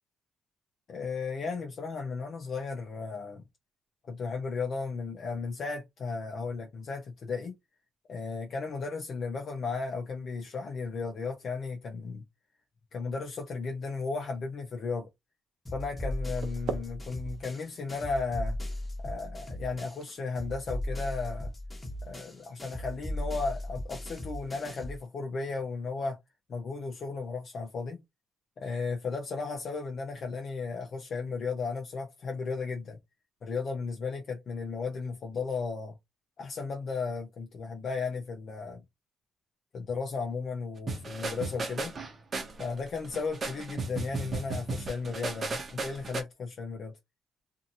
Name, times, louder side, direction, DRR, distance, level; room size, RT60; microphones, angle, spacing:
voice 1, 0.9-3.4 4.1-7.5 8.1-12.2 12.9-15.1 15.7-18.6 19.0-21.5 22.0-26.2 26.5-28.0 28.6-33.0 33.4-35.9 36.4-38.8 39.7-41.9 42.6-46.9, left 4 dB, 55° left, 0.7 m, -35 dB
sound 1, 15.7-20.1 20.4-25.0, left 1 dB, 15° left, 1.3 m, -37 dB
sound 2, 16.1-22.0, right 6 dB, 70° right, 0.6 m, -45 dB
sound 3, 40.9-46.2, right 3 dB, 40° right, 0.9 m, -35 dB
2.8 x 2.7 x 2.6 m
cardioid pair, 90°, 0 cm